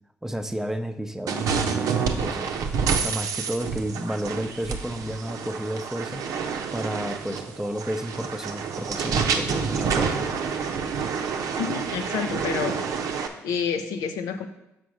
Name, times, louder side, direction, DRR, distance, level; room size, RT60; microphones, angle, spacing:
voice 1, 0.2-2.5 3.0-6.2 6.7-10.3, right 1 dB, 5° right, 8 dB, 0.6 m, -31 dB
sound 1, 1.3-13.3, right 6 dB, 75° right, 0.7 m, -28 dB
voice 2, 11.6-12.8 13.1-14.5, left 6 dB, 90° left, 7 dB, 0.7 m, -29 dB
6.0 x 4.5 x 6.3 m, 0.89 s
supercardioid pair, 65°, 6 cm